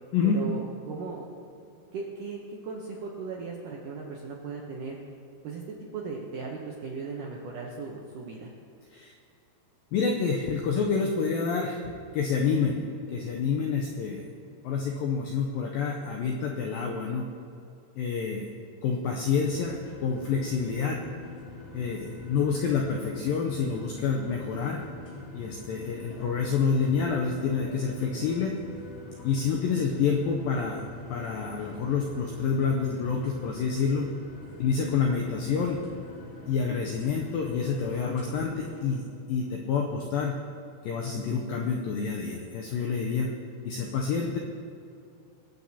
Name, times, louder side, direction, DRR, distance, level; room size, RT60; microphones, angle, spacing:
voice 1, 0.2-1.3 1.9-5.0 5.4-8.5, right 4 dB, 80° right, -2 dB, 1.8 m, -37 dB
voice 2, 9.9-12.8 13.1-14.2 14.6-17.3 18.0-18.5 18.8-21.0 21.7-24.8 25.3-28.5 29.2-30.8 31.1-34.1 34.6-35.8 36.5-40.3 40.8-43.3 43.7-44.4, left 5 dB, 85° left, 0 dB, 2.0 m, -28 dB
sound 1, 19.4-38.8, left 3 dB, 65° left, 4.3 m, -44 dB
23.0 x 7.8 x 2.8 m, 2.5 s
omnidirectional pair, 4.9 m